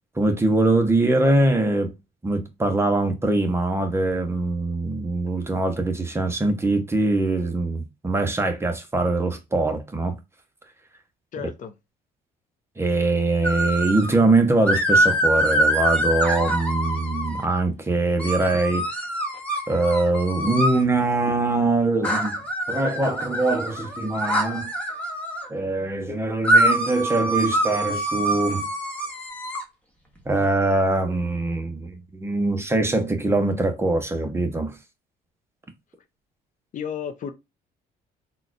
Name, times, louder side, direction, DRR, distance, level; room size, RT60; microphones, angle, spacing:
voice 1, 0.2-2.0 2.2-10.2 12.8-18.9 19.7-22.4 22.7-24.7 25.5-28.7 30.3-34.7, right 2 dB, 15° right, 0.8 m, -23 dB
voice 2, 11.3-11.7 36.7-37.3, left 8 dB, 50° left, 0.6 m, -32 dB
sound 1, 13.4-14.1 14.7-17.4 18.2-20.8 22.0-25.5 26.4-29.6, right 1 dB, 5° left, 1.1 m, -24 dB
3.9 x 2.4 x 2.4 m
cardioid pair, 110°, 17 cm